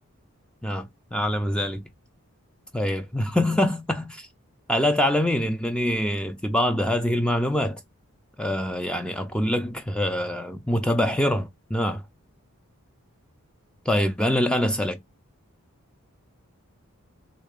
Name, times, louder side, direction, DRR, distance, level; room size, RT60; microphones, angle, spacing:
voice 1, 0.6-1.8 2.7-4.3 4.7-7.8 8.4-12.0 13.9-15.0, left 1 dB, 5° left, 0.4 m, -24 dB
3.3 x 2.6 x 3.3 m
head